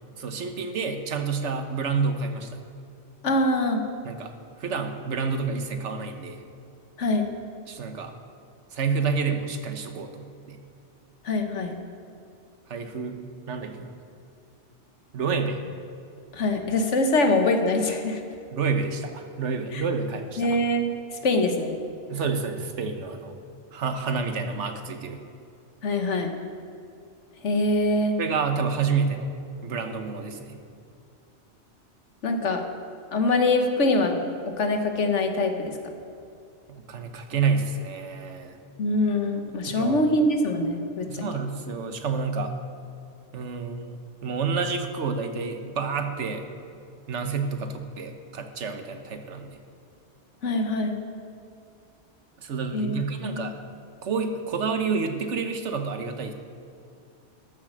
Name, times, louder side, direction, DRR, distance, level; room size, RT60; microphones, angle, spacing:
voice 1, 0.2-2.6 4.0-6.4 7.7-8.1 8.7-10.6 12.7-13.2 13.5-13.9 15.1-15.6 18.5-20.6 22.1-23.4 23.7-25.2 28.2-29.3 29.6-30.6 36.7-38.6 39.7-40.0 41.1-42.5 43.3-46.5 47.1-49.6 52.4-53.5 54.0-56.3, right 5 dB, 80° right, 7 dB, 1.3 m, -29 dB
voice 2, 3.2-3.8 7.0-7.3 11.2-11.8 16.3-18.2 19.7-19.8 20.4-20.9 21.2-21.7 25.8-26.3 27.4-28.2 32.2-32.6 33.1-34.2 34.6-35.8 38.8-41.2 50.4-51.0 52.7-53.0 53.2-53.5, left 2 dB, 80° left, 5 dB, 1.5 m, -23 dB
13.5 x 7.4 x 6.4 m, 2.4 s
omnidirectional pair, 1.2 m